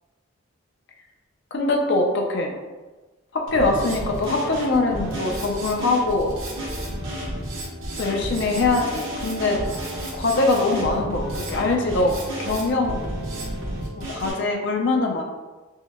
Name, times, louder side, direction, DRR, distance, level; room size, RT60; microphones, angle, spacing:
voice 1, 1.5-2.5 3.3-6.3 8.0-9.6 10.1-13.0 14.0-15.2, left 2 dB, 55° left, 1 dB, 0.5 m, -23 dB
Drum kit, 3.5-14.3, right 1 dB, 75° right, 1.0 m, -31 dB
4.5 x 2.1 x 2.3 m, 1.2 s
head